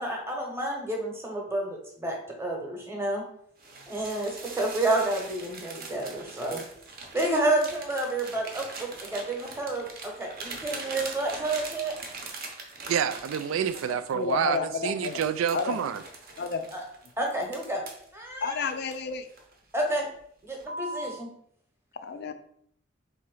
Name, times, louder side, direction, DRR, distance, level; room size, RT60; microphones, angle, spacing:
voice 1, 0.0-3.2 3.9-6.6 7.1-11.9 16.7-16.8 17.2-17.8 18.1-18.7 19.7-20.1 20.4-21.3, right 2 dB, 15° right, 1.0 m, -30 dB
sound 1, 3.6-14.4 14.9-18.1 18.6-19.5 19.9-20.2 20.6-21.2, right 3 dB, 50° right, 0.8 m, -42 dB
voice 2, 12.9-16.0, right 8 dB, 75° right, 0.3 m, -28 dB
voice 3, 13.8-15.2 15.5-15.8 16.4-16.6 18.4-19.3 22.0-22.3, left 5 dB, 55° left, 0.4 m, -31 dB
3.7 x 2.9 x 4.7 m
head